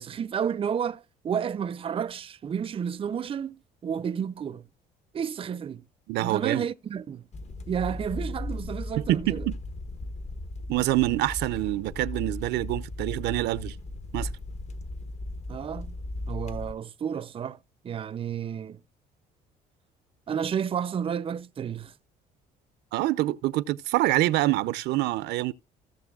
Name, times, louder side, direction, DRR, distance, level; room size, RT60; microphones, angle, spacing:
voice 1, 0.0-4.6 5.1-5.8 6.2-7.2 7.7-9.5 15.5-15.9 16.3-17.6 17.8-18.8 20.3-21.9, right 8 dB, 30° right, 0.5 m, -31 dB
voice 2, 6.1-6.6 9.0-9.5 10.7-13.8 14.1-14.3 22.9-25.5, right 16 dB, 80° right, 0.6 m, -26 dB
sound 1, 7.3-16.7, left 2 dB, 40° left, 1.1 m, -36 dB
17.0 x 6.7 x 2.3 m
cardioid pair, 110°, 17 cm